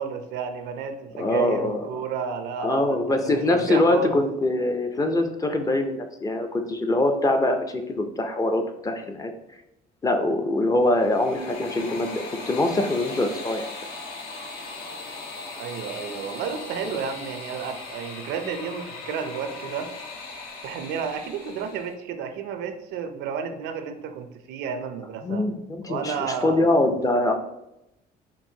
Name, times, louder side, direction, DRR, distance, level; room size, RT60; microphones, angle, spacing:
voice 1, 0.0-4.2 15.6-19.9 20.6-25.5 25.8-26.7, right 6 dB, 85° right, 8 dB, 0.5 m, -32 dB
voice 2, 1.2-1.9 2.6-9.3 10.0-13.7 16.8-16.9 25.2-27.3, left 2 dB, 20° left, 6 dB, 0.4 m, -23 dB
sound 1, 10.8-21.9, left 3 dB, 70° left, 0.8 m, -38 dB
4.5 x 2.5 x 2.7 m, 0.87 s
cardioid pair, 110°, 17 cm